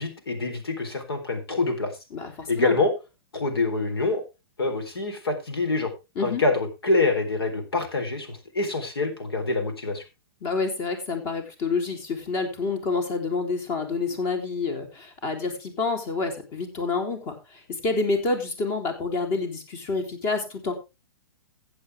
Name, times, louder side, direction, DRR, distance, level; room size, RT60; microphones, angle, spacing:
voice 1, 0.0-1.9 2.5-2.9 3.3-4.2 4.6-5.9 6.2-10.0, left 3 dB, 85° left, 6 dB, 3.9 m, -25 dB
voice 2, 2.1-2.8 6.1-6.4 10.4-20.7, left 4 dB, 35° left, 5 dB, 3.5 m, -28 dB
15.5 x 8.1 x 3.5 m, 0.26 s
hypercardioid pair, 130°, 12 cm